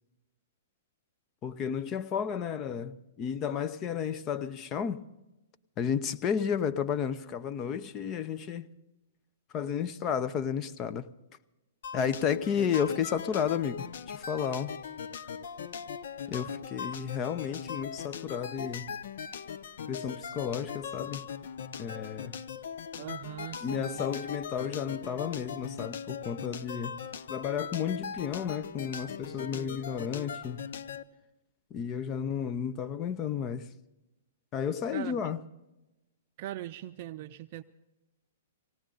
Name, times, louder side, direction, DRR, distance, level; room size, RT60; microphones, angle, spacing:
voice 1, 1.4-5.0 5.8-8.7 9.5-11.1 11.9-14.7 16.3-18.9 19.9-21.3 21.8-22.4 23.6-27.0 27.3-30.6 31.7-33.7 34.5-35.4, left 7 dB, 30° left, 0.7 m, -32 dB
sound 1, 11.8-31.0, left 7 dB, 65° left, 0.7 m, -40 dB
voice 2, 23.0-24.1 34.9-35.3 36.4-37.6, right 13 dB, 45° right, 0.5 m, -40 dB
18.5 x 18.0 x 3.9 m
hypercardioid pair, 125°, 0 cm